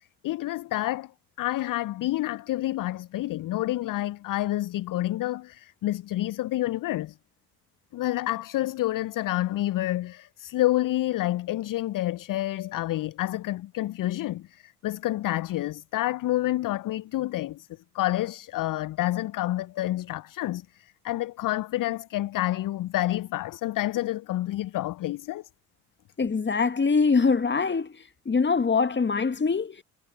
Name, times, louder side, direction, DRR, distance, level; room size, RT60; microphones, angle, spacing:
voice 1, 0.2-1.1 1.4-7.1 7.9-17.7 17.9-25.4, left 15 dB, 45° left, 0.8 m, -28 dB
voice 2, 26.2-27.9 28.3-29.8, left 5 dB, 25° left, 1.8 m, -23 dB
figure-of-eight pair, 45°, 47 cm